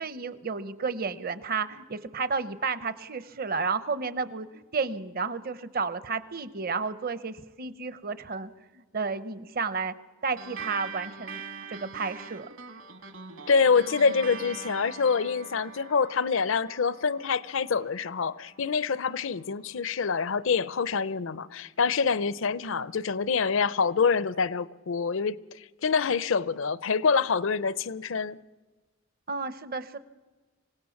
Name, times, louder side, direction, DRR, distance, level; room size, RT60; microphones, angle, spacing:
voice 1, 0.0-9.9 10.2-11.4 11.7-12.5 22.7-22.9 29.3-30.0, right 4 dB, 45° right, 0.9 m, -32 dB
sound 1, 10.4-19.2, right 5 dB, 60° right, 1.8 m, -43 dB
voice 2, 13.5-28.4, left 5 dB, 65° left, 0.6 m, -26 dB
25.5 x 17.5 x 7.2 m
head